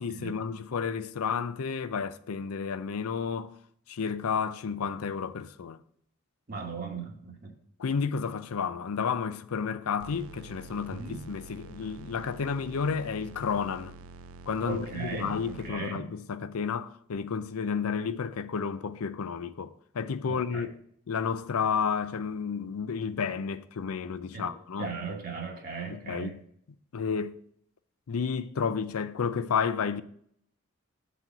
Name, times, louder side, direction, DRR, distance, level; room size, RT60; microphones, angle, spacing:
voice 1, 0.0-3.5 3.9-5.8 7.8-13.9 14.5-20.8 21.1-24.9 25.9-26.4 26.9-27.3 28.1-30.0, left 6 dB, 80° left, 0.5 m, -31 dB
voice 2, 6.5-7.5 10.9-11.2 14.6-16.1 20.3-20.7 24.3-26.3, right 4 dB, 40° right, 1.1 m, -38 dB
sound 1, 10.0-15.7, right 3 dB, 70° right, 0.4 m, -47 dB
7.5 x 4.1 x 5.9 m
head